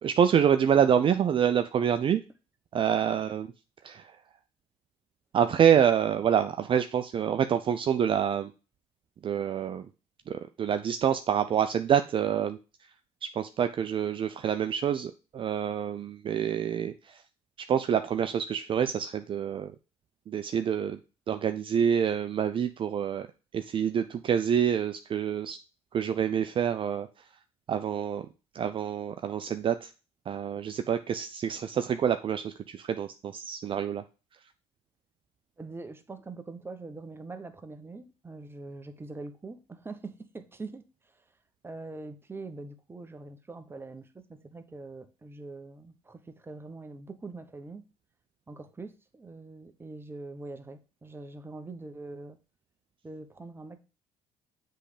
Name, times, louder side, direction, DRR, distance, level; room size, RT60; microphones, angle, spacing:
voice 1, 0.0-2.2 2.7-3.5 3.8-4.2 5.3-8.5 9.2-9.9 10.3-12.6 13.2-17.2 17.7-19.7 20.3-21.0 21.3-23.3 23.5-25.6 25.9-27.1 27.7-28.3 28.5-29.9 30.3-34.0, right 8 dB, 45° right, 0.5 m, -27 dB
voice 2, 35.6-40.8 41.1-41.2 41.6-47.8 48.5-52.4 53.0-53.8, right 3 dB, 20° right, 1.0 m, -43 dB
7.6 x 3.4 x 4.9 m
supercardioid pair, 85°, 12 cm